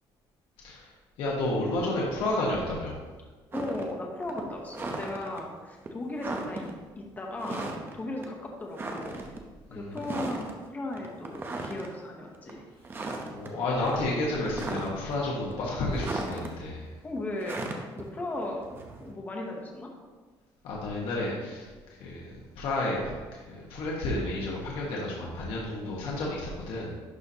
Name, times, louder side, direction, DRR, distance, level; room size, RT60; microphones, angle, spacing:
voice 1, 1.2-3.0 9.7-10.0 13.3-16.9 20.6-21.7 22.0-22.2 22.6-23.0 23.3-26.9, left 2 dB, 80° left, -4 dB, 1.3 m, -31 dB
voice 2, 3.5-6.7 7.0-9.2 9.7-12.6 17.0-17.6 18.0-19.9, left 2 dB, 20° left, 0 dB, 0.9 m, -36 dB
sound 1, 3.5-3.9 4.2-5.4 5.8-5.9 6.2-6.7 7.4-8.0 8.2-8.3 8.7-9.4 9.9-10.5 10.9-11.9 12.3-12.5 12.8-13.5 13.8-15.1 15.5-16.5 17.4-19.1, right 2 dB, 25° right, 0.7 m, -36 dB
11.5 x 4.2 x 2.8 m, 1.4 s
cardioid pair, 150°, 9 cm